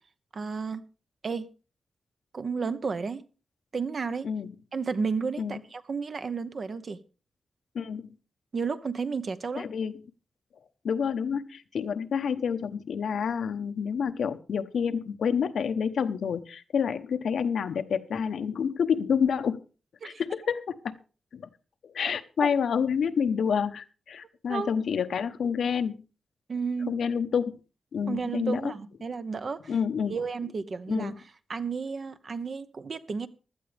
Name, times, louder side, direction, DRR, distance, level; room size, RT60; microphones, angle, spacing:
voice 1, 0.3-0.8 1.2-1.5 2.3-3.2 3.7-4.3 4.7-7.0 8.5-9.7 20.0-20.2 22.0-22.1 22.4-22.5 24.5-24.7 26.5-26.9 28.1-29.7 30.1-31.1 31.5-33.3, right 5 dB, 45° right, 12 dB, 0.9 m, -32 dB
voice 2, 7.7-8.1 9.6-10.0 10.8-19.6 20.0-20.9 21.3-21.5 21.8-26.0 26.9-27.5 27.9-28.7 29.7-30.2 30.9-31.2, left 7 dB, 80° left, 10 dB, 1.0 m, -28 dB
16.0 x 12.5 x 3.4 m, 0.34 s
wide cardioid pair, 160°, 0 cm